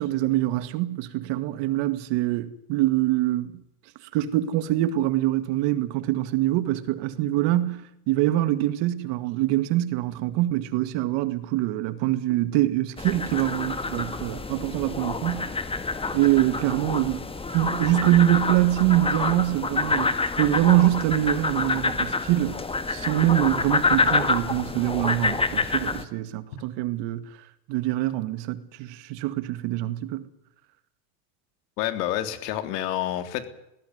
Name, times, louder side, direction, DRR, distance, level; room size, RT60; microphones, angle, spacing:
voice 1, 0.0-3.6 4.1-15.6 16.1-22.6 22.9-27.3 27.7-30.3, right 15 dB, 65° right, 2.2 m, -24 dB
sound 1, 13.0-26.0, left 3 dB, 10° left, 1.7 m, -27 dB
voice 2, 31.8-33.5, left 12 dB, 85° left, 3.5 m, -28 dB
20.5 x 16.5 x 9.6 m
supercardioid pair, 130°, 47 cm